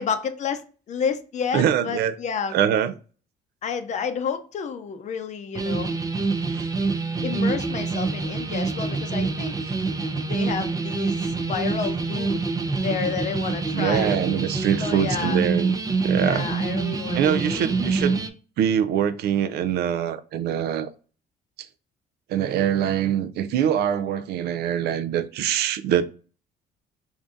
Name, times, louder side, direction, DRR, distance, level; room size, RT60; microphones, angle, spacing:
voice 1, 0.0-2.5 3.6-5.9 7.2-9.5 10.2-12.5 12.8-14.2 14.8-15.4 16.2-18.2, left 6 dB, 45° left, 0.6 m, -30 dB
voice 2, 1.5-2.1 2.5-2.9 6.5-6.7 13.7-15.7 16.0-16.5 17.1-18.3 18.6-20.9 22.3-26.1, right 9 dB, 75° right, 0.4 m, -24 dB
sound 1, 5.6-18.3, right 4 dB, 20° right, 0.5 m, -26 dB
3.5 x 2.6 x 3.6 m
cardioid pair, 110°, 17 cm